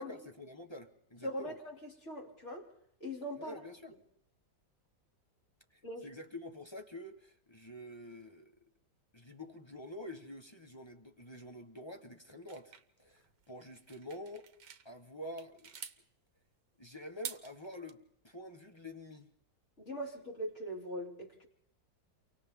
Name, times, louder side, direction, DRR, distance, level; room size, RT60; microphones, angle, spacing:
voice 1, 0.0-1.6 3.4-3.9 5.7-8.5 9.1-14.5 14.8-15.7 16.8-19.3, left 1 dB, 20° left, 1.0 m, -48 dB
voice 2, 1.2-2.7 3.0-3.6 5.8-6.1 19.8-21.5, equal, 40° left, 3.5 m, -41 dB
sound 1, 12.5-14.9 15.2-16.0 17.0-17.9, right 8 dB, 75° right, 1.7 m, -47 dB
29.5 x 24.0 x 3.7 m
omnidirectional pair, 1.9 m